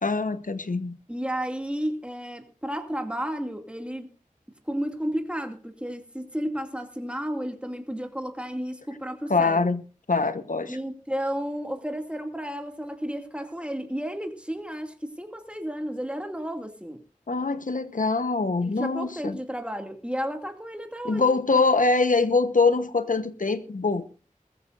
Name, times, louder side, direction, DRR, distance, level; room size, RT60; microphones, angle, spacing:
voice 1, 0.0-1.0 9.3-9.8 10.1-10.8 17.3-19.4 21.0-24.0, left 3 dB, 75° left, 11 dB, 1.1 m, -23 dB
voice 2, 1.1-4.1 4.7-9.7 10.7-17.0 18.6-21.6, equal, 10° right, 5 dB, 2.4 m, -32 dB
21.0 x 14.5 x 2.6 m, 0.36 s
wide cardioid pair, 55°, 14 cm